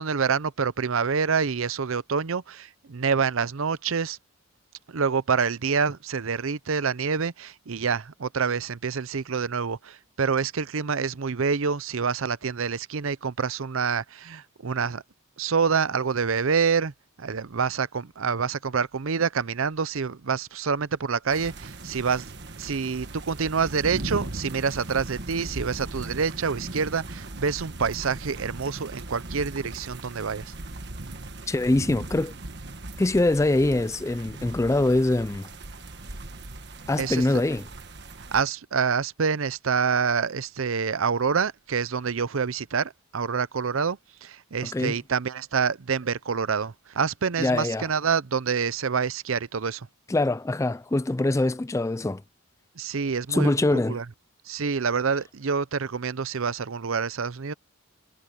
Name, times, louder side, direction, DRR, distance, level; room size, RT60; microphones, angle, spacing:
voice 1, 0.0-4.2 4.9-15.0 15.4-16.9 17.2-22.3 22.6-30.5 37.0-37.4 38.3-49.9 52.8-54.0 54.5-57.5, right 5 dB, 70° right, 0.6 m, -27 dB
sound 1, 21.3-38.4, right 2 dB, 50° right, 1.5 m, -38 dB
voice 2, 31.5-32.3 33.0-35.5 36.9-37.6 44.7-44.9 47.4-47.9 50.1-52.2 53.3-54.0, left 2 dB, 15° left, 0.3 m, -23 dB
head